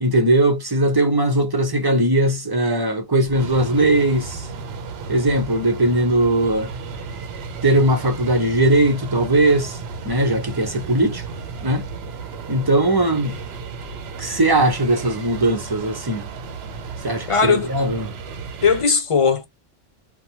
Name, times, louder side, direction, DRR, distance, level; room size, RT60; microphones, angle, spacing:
voice 1, 0.0-4.5 5.1-6.7 7.6-9.8 10.0-11.2 11.6-11.8 12.5-13.3 14.2-16.3 17.0-18.1, right 1 dB, 25° right, 0.6 m, -19 dB
sound 1, 3.2-18.8, right 4 dB, 70° right, 0.9 m, -34 dB
voice 2, 17.3-17.7 18.6-19.5, left 5 dB, 45° left, 0.4 m, -18 dB
2.7 x 2.2 x 2.8 m
omnidirectional pair, 1.2 m